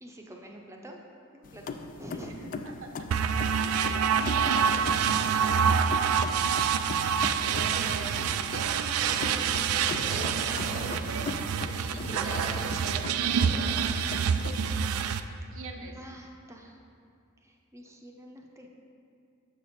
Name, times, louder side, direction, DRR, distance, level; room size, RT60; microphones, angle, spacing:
voice 1, 0.0-1.0 1.3-2.5 15.9-16.8 17.4-18.7, equal, 15° right, 1 dB, 0.6 m, -47 dB
sound 1, 1.4-14.9, left 4 dB, 40° left, 0.3 m, -40 dB
voice 2, 2.3-5.0 6.0-6.4 7.4-11.3 11.7-14.7 15.5-16.0, right 3 dB, 65° right, 3 dB, 0.7 m, -42 dB
sound 2, 3.1-15.2, right 7 dB, 85° right, 0.3 m, -27 dB
sound 3, 7.3-11.2 11.5-13.7, left 1 dB, 80° left, 1.0 m, -42 dB
6.7 x 6.0 x 4.2 m, 2.4 s
head